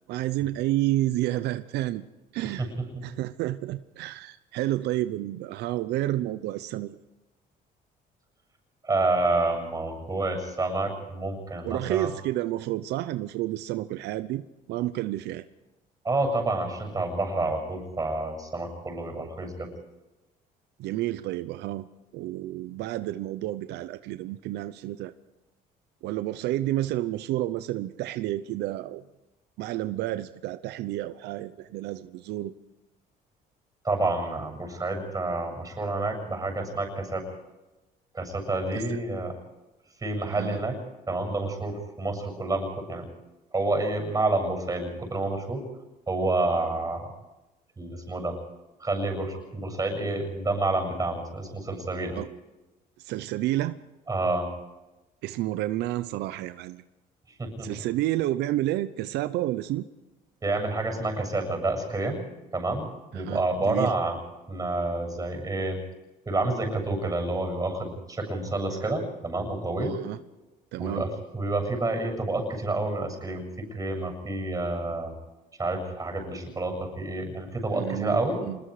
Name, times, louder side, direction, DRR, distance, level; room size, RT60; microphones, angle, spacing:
voice 1, 0.1-2.0 2.3-2.7 3.0-7.0 11.6-15.4 20.8-21.9 22.1-25.1 26.0-29.0 29.6-32.5 38.7-39.0 40.3-40.6 52.1-52.3 53.0-53.8 55.2-56.8 57.6-59.9 63.1-63.9 69.8-70.2 70.7-71.1 77.7-78.6, right 15 dB, 85° right, 12 dB, 0.8 m, -30 dB
voice 2, 8.8-12.1 16.0-19.7 33.8-37.4 38.1-39.3 40.0-40.8 41.1-43.1 43.5-45.7 46.1-47.1 47.8-48.4 48.8-52.2 54.1-54.5 57.4-57.9 60.4-62.2 62.5-62.9 63.1-64.2 64.5-65.8 66.3-70.0 70.8-75.1 75.6-78.4, right 2 dB, 20° right, 4 dB, 7.5 m, -29 dB
26.5 x 21.0 x 5.0 m, 1.1 s
cardioid pair, 110°, 17 cm